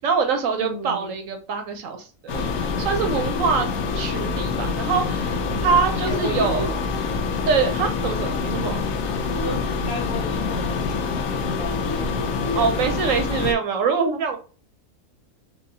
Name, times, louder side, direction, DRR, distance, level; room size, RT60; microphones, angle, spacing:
voice 1, 0.0-6.7 7.4-8.8 12.5-14.4, right 5 dB, 65° right, 5 dB, 1.0 m, -24 dB
voice 2, 0.6-1.1 5.4-5.8 6.1-6.7 7.0-7.4 9.3-12.7, equal, 25° left, -4 dB, 1.4 m, -33 dB
sound 1, 2.3-13.5, left 4 dB, 65° left, 0.9 m, -26 dB
4.6 x 2.3 x 2.7 m, 0.36 s
omnidirectional pair, 1.6 m